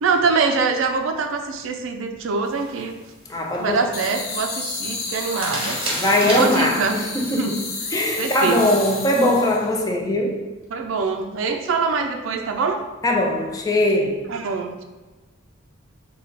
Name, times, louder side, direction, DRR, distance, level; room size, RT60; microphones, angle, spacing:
voice 1, 0.0-2.9 3.6-5.8 6.2-7.5 8.2-8.7 10.7-12.8 14.3-14.8, right 4 dB, 65° right, 0.4 m, -24 dB
sound 1, 2.4-9.9, right 1 dB, 25° right, 0.8 m, -35 dB
voice 2, 3.3-3.9 5.9-7.6 7.9-10.4 13.0-14.3, left 1 dB, 15° left, 0.3 m, -21 dB
sound 2, 3.9-9.7, left 3 dB, 85° left, 0.8 m, -32 dB
3.2 x 2.2 x 4.0 m
head